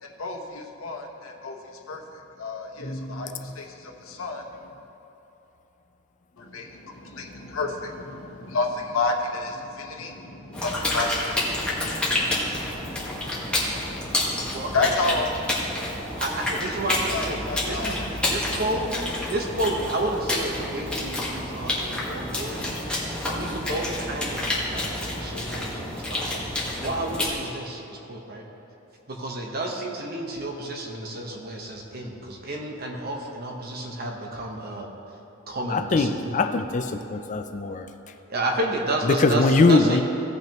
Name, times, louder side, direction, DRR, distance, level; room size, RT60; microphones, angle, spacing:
voice 1, 0.0-4.6 6.4-15.3 17.1-18.0, left 3 dB, 85° left, 2 dB, 1.0 m, -31 dB
sound 1, 10.5-27.3, left 1 dB, 5° left, 1.5 m, -29 dB
voice 2, 14.5-15.2 16.2-18.9 19.3-22.7 23.2-26.4 26.8-28.4 29.1-34.9 35.5-36.4 38.3-40.0, right 1 dB, 50° right, 1 dB, 1.1 m, -31 dB
voice 3, 35.7-36.9 37.1-37.8 39.2-40.0, left 3 dB, 40° left, 8 dB, 0.4 m, -21 dB
16.5 x 5.9 x 3.0 m, 3.0 s
head